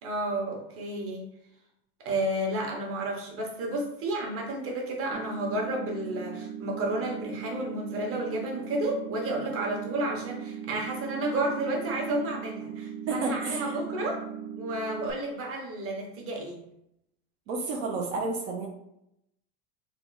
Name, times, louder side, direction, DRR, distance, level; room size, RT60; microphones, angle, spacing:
voice 1, 0.0-1.3 2.0-14.2 14.6-16.6, right 1 dB, 45° right, 0 dB, 1.1 m, -31 dB
sound 1, 5.1-15.1, right 8 dB, 30° right, 0.4 m, -39 dB
voice 2, 13.1-13.8 17.5-18.7, right 3 dB, 80° right, 0 dB, 0.8 m, -31 dB
3.4 x 2.4 x 4.0 m, 0.79 s
supercardioid pair, 130°, 32 cm